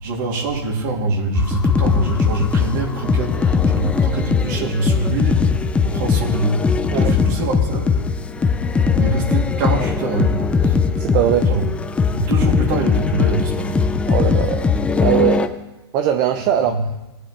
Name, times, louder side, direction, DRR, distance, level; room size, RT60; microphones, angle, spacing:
voice 1, 0.0-7.8 9.0-10.8 11.5-13.9 16.6-16.8, right 2 dB, 50° right, -3 dB, 3.0 m, -24 dB
sound 1, 1.3-15.5, left 5 dB, 10° left, 0.5 m, -19 dB
voice 2, 11.0-11.5 14.1-14.7 15.0-15.5 15.9-16.8, right 10 dB, 35° right, 7 dB, 0.7 m, -20 dB
18.0 x 10.0 x 3.4 m, 1.0 s
hypercardioid pair, 140°, 13 cm